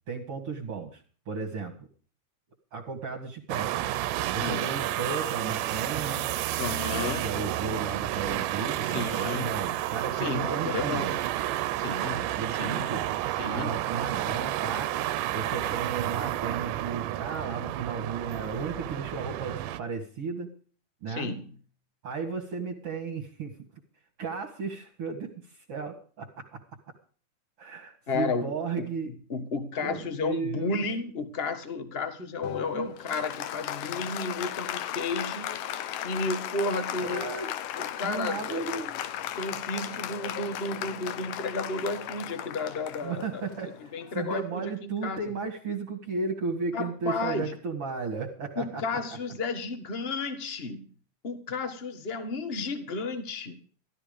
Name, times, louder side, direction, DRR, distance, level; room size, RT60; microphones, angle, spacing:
voice 1, 0.1-1.9 2.7-3.9 4.2-6.3 6.9-11.1 12.1-13.1 13.5-14.9 15.3-20.5 21.0-21.3 22.0-23.5 24.2-26.6 27.6-29.1 29.8-30.9 32.7-32.9 37.0-37.5 38.0-39.0 43.0-43.7 44.1-49.0, right 4 dB, 50° right, 0 dB, 2.6 m, -34 dB
sound 1, 3.5-19.8, right 14 dB, 85° right, 2.4 m, -31 dB
voice 2, 4.4-4.7 6.6-7.2 8.8-9.6 10.2-11.2 11.8-12.3 12.6-12.9 13.4-13.8 21.1-21.5 28.1-35.5 36.0-37.3 37.7-38.6 39.4-43.4 43.9-45.3 46.7-47.5 48.6-50.9 51.2-53.6, left 3 dB, 45° left, 10 dB, 0.7 m, -33 dB
Applause, 32.4-44.3, left 11 dB, 85° left, 2.6 m, -36 dB
15.0 x 12.5 x 5.2 m, 0.43 s
omnidirectional pair, 3.7 m